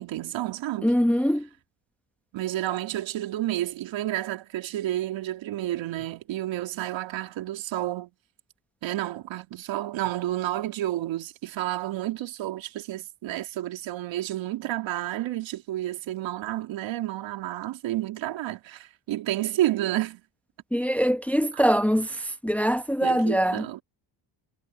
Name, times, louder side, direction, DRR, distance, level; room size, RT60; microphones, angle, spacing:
voice 1, 0.0-0.9 2.3-8.1 8.8-20.2 23.0-23.8, right 14 dB, 75° right, 3.4 m, -30 dB
voice 2, 0.8-1.5 20.7-23.8, equal, 5° left, 1.1 m, -23 dB
cardioid pair, 85°, 46 cm